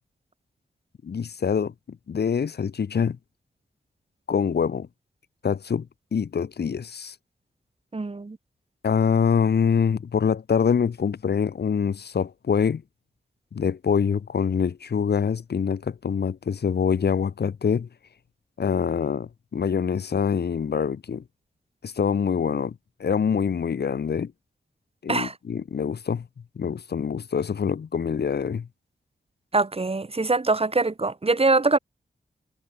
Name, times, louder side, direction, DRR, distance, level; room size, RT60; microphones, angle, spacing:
voice 1, 1.0-1.7 2.1-3.2 4.3-4.9 5.4-5.9 6.1-7.1 8.8-12.8 13.5-17.9 18.6-21.2 21.8-24.3 25.0-26.3 26.6-28.7, left 6 dB, 85° left, 3.9 m, -25 dB
voice 2, 7.9-8.4 25.1-25.3 29.5-31.8, right 3 dB, 35° right, 2.9 m, -23 dB
cardioid pair, 65°, 17 cm